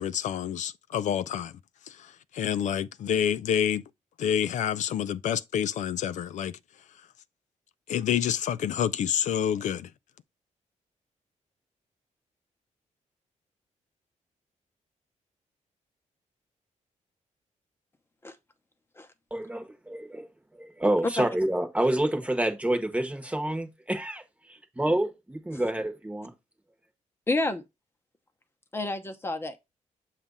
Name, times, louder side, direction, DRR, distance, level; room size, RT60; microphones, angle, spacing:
voice 1, 0.0-1.5 1.9-3.8 4.2-6.6 7.9-9.9, left 9 dB, 70° left, 0.4 m, -28 dB
voice 2, 19.3-20.3 20.5-24.2 24.8-26.3, right 1 dB, 10° right, 1.0 m, -28 dB
voice 3, 27.3-27.6 28.7-29.6, left 2 dB, 20° left, 0.8 m, -29 dB
7.2 x 2.4 x 5.3 m
cardioid pair, 130°, 13 cm